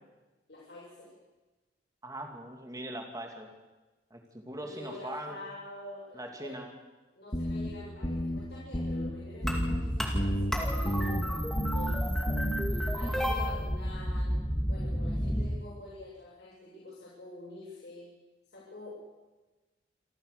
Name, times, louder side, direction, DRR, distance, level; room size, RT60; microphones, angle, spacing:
voice 1, 0.5-1.1 4.6-6.5 7.2-12.0 12.7-14.4 14.7-18.1 18.5-19.0, left 1 dB, 65° left, -7 dB, 7.4 m, -47 dB
voice 2, 2.0-3.5 4.1-5.4 6.1-6.7 11.3-11.4 12.9-13.6, right 1 dB, 20° right, 3 dB, 2.7 m, -41 dB
sound 1, 7.3-7.7 8.0-8.4 8.7-9.1 9.4-9.8 10.1-10.5 10.9-11.2 11.6-11.9 12.3-12.6, equal, 30° left, 2.1 m, -31 dB
sound 2, 9.4-15.5, equal, ahead, 2.3 m, -31 dB
27.5 x 14.5 x 6.9 m, 1.2 s
head